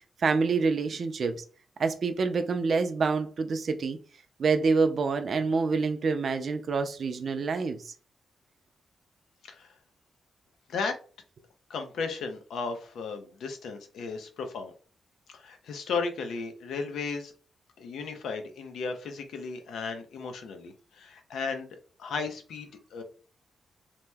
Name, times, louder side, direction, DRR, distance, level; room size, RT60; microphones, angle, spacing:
voice 1, 0.2-1.4 1.8-4.0 4.4-7.9, right 4 dB, 50° right, 0.4 m, -27 dB
voice 2, 11.7-14.7 15.3-17.3 17.8-21.7 22.0-23.0, left 4 dB, 90° left, 0.6 m, -35 dB
2.8 x 2.0 x 3.4 m
wide cardioid pair, 145°, 0 cm